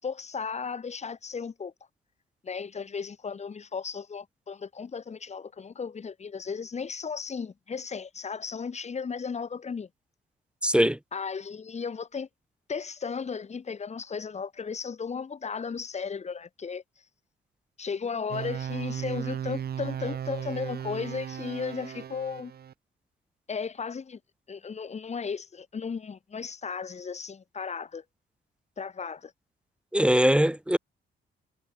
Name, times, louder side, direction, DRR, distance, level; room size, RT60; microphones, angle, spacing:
voice 1, 0.0-1.7 2.4-9.9 11.1-12.3 12.7-16.8 17.8-22.5 23.5-24.2 24.5-28.0 28.8-29.3, left 5 dB, 35° left, 1.7 m, -35 dB
voice 2, 10.6-11.0 29.9-30.8, equal, 5° right, 0.3 m, -21 dB
sound 1, 18.3-22.7, right 9 dB, 55° right, 1.2 m, -36 dB
cardioid pair, 90°, 20 cm